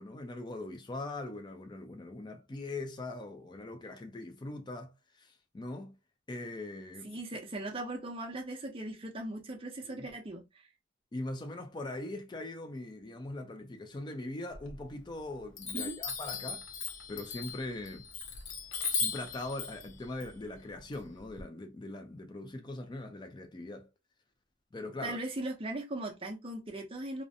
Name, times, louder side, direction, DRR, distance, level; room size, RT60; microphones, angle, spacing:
voice 1, 0.0-5.9 6.3-7.1 9.9-10.1 11.1-16.6 17.1-18.1 18.9-23.9 24.7-25.2, left 2 dB, 20° left, 0.4 m, -41 dB
voice 2, 7.0-10.4 15.7-16.0 25.0-27.2, right 2 dB, 25° right, 0.6 m, -38 dB
Chime, 14.5-15.2 15.6-21.4, left 4 dB, 65° left, 0.6 m, -38 dB
2.5 x 2.1 x 2.6 m
head